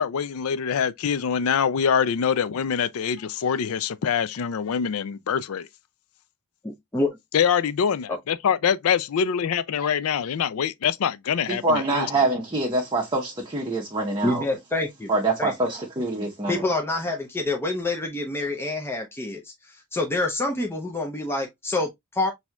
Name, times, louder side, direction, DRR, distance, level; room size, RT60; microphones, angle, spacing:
voice 1, 0.0-5.7 7.3-12.1, left 7 dB, 70° left, 0.4 m, -24 dB
voice 2, 6.6-7.2 8.1-8.2 14.2-15.1 15.4-15.5 16.5-22.3, left 2 dB, 10° left, 0.6 m, -27 dB
voice 3, 11.5-14.4 15.1-16.6, right 2 dB, 20° right, 0.8 m, -25 dB
6.0 x 2.7 x 2.3 m
head